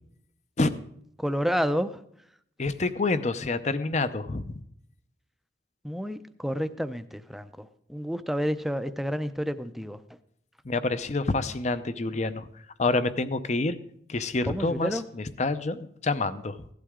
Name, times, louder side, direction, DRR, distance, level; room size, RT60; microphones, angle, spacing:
voice 1, 1.2-2.0 5.8-10.0 14.5-15.0, equal, ahead, 10 dB, 0.5 m, -30 dB
voice 2, 2.6-4.6 10.7-12.5 12.8-13.8 14.1-16.6, left 3 dB, 40° left, 13 dB, 0.6 m, -27 dB
16.5 x 11.5 x 3.7 m, 0.69 s
head